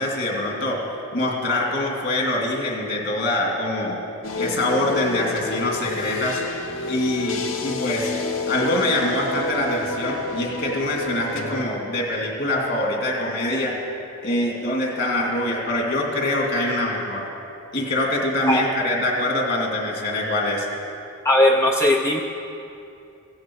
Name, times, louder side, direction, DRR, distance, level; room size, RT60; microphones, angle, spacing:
voice 1, 0.0-4.0 4.4-6.4 6.9-13.8 14.2-17.3 17.7-20.7, left 1 dB, 55° left, -1 dB, 2.6 m, -24 dB
sound 1, 4.2-11.6, left 2 dB, 75° left, 1.0 m, -29 dB
voice 2, 21.2-22.2, left 1 dB, 15° left, 1 dB, 0.5 m, -18 dB
16.0 x 15.5 x 4.7 m, 2.7 s
head